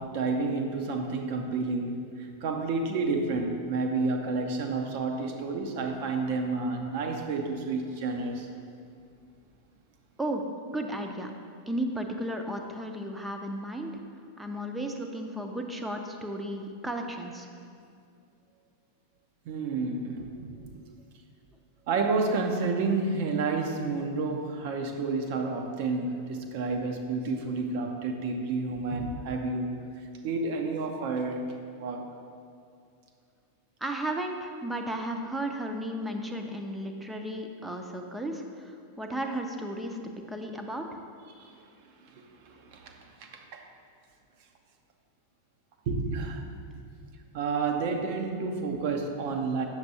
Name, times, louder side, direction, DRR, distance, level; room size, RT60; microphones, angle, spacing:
voice 1, 0.0-8.5 19.5-20.5 21.9-29.7 30.2-31.5 31.8-32.1 41.4-41.5 42.1-43.6 45.9-46.4 47.3-49.7, right 3 dB, 50° right, 4 dB, 0.7 m, -30 dB
voice 2, 10.7-11.3 11.7-13.9 14.4-17.5 33.8-40.0 40.3-41.0, right 1 dB, 5° right, 4 dB, 0.6 m, -34 dB
8.0 x 6.7 x 2.8 m, 2.4 s
figure-of-eight pair, 90°, 0 cm